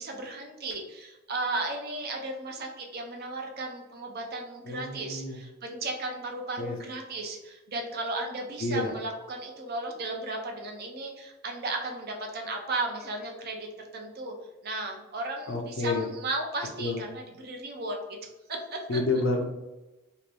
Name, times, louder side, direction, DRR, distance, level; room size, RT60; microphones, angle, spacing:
voice 1, 0.0-13.7 13.9-14.3 14.6-17.9 18.7-19.0, right 2 dB, 45° right, 2 dB, 0.6 m, -35 dB
voice 2, 4.6-5.4 6.6-6.8 8.6-8.9 15.5-16.1 16.8-17.0 18.9-19.4, left 2 dB, 65° left, 1 dB, 0.5 m, -29 dB
2.7 x 2.6 x 3.3 m, 1.0 s
head